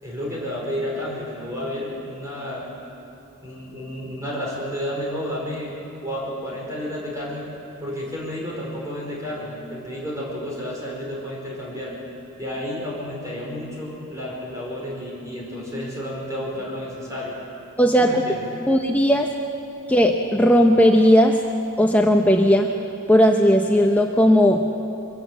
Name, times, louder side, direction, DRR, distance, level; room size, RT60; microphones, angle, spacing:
voice 1, 0.0-2.6 3.4-5.7 6.0-7.4 7.8-11.9 12.4-17.3 18.0-18.5, equal, 15° right, -4 dB, 4.9 m, -31 dB
voice 2, 17.8-18.2 18.7-19.3 19.9-21.4 21.8-22.7 23.1-24.6, equal, 5° left, 2 dB, 0.7 m, -16 dB
23.5 x 14.5 x 8.2 m, 2.8 s
head